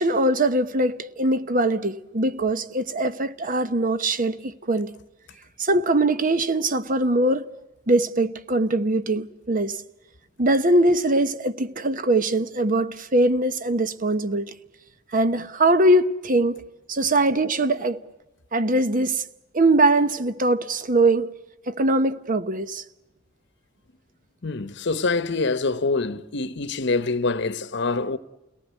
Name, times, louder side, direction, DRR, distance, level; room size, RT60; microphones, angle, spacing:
voice 1, 0.0-4.9 5.6-7.5 7.9-9.8 10.4-14.5 15.1-16.6 16.9-18.0 18.5-19.2 19.5-21.3 21.7-22.8, right 2 dB, 45° right, 1.0 m, -22 dB
voice 2, 24.4-28.2, left 3 dB, 65° left, 1.0 m, -25 dB
29.0 x 19.0 x 8.3 m
head